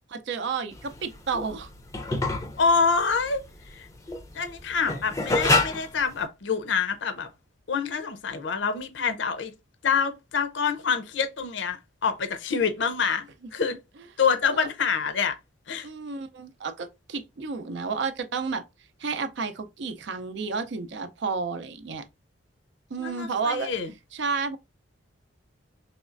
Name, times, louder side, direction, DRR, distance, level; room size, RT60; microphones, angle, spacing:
voice 1, 0.1-1.7 14.5-14.7 15.8-18.6 19.0-22.0 22.9-23.7 24.1-24.6, right 5 dB, 60° right, 0.5 m, -31 dB
sound 1, 0.7-6.2, left 2 dB, 15° left, 0.5 m, -27 dB
voice 2, 2.6-3.4 3.7-3.9 4.3-7.3 7.7-9.5 9.8-13.8 14.2-15.3 15.7-15.9 23.0-23.9, left 5 dB, 65° left, 0.6 m, -26 dB
4.2 x 3.1 x 2.4 m
head